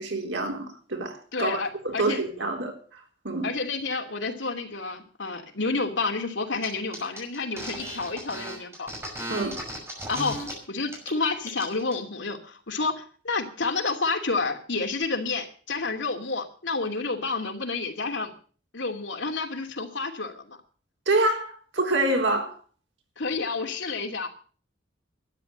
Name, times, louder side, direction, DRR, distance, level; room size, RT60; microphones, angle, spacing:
voice 1, 0.0-3.5 9.3-9.6 21.1-22.6, right 2 dB, 80° right, 3.9 m, -27 dB
voice 2, 1.3-2.2 3.4-8.9 10.1-18.3 18.7-20.6 23.2-24.3, left 3 dB, 75° left, 2.7 m, -30 dB
sound 1, 6.6-6.7 6.9-10.5 10.9-11.1 11.4-11.9, right 1 dB, 15° right, 6.0 m, -36 dB
12.5 x 10.5 x 8.0 m
head